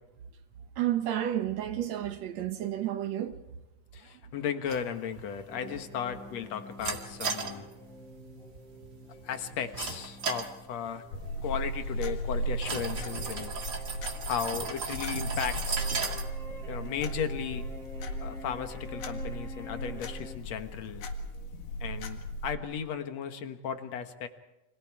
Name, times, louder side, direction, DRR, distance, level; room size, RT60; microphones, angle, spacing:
voice 1, 0.8-3.4, right 12 dB, 65° right, 2.1 m, -31 dB
voice 2, 3.9-7.7 9.2-11.1 11.4-13.6 14.3-15.9 16.7-17.7 18.2-21.1 21.8-24.3, left 8 dB, 60° left, 2.3 m, -35 dB
sound 1, 4.7-18.0, right 4 dB, 35° right, 2.2 m, -39 dB
sound 2, 5.5-20.4, equal, ahead, 3.5 m, -48 dB
sound 3, 11.1-22.6, right 1 dB, 85° left, 3.5 m, -36 dB
29.5 x 26.0 x 4.8 m
omnidirectional pair, 3.7 m